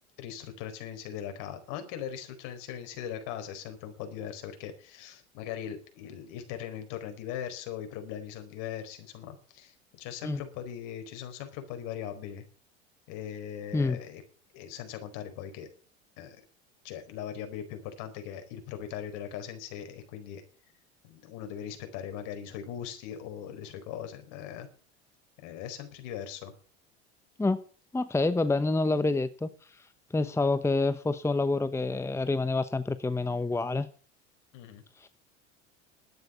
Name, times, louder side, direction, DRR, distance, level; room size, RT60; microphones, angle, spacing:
voice 1, 0.2-12.5 13.1-14.2 14.5-15.7 16.2-16.4 16.8-20.4 21.0-24.7 25.4-26.5 34.5-34.8, left 9 dB, 60° left, 4.6 m, -40 dB
voice 2, 27.9-29.8 30.1-33.9 35.0-35.1, left 3 dB, 10° left, 0.9 m, -27 dB
12.0 x 9.5 x 8.4 m
hypercardioid pair, 85°, 34 cm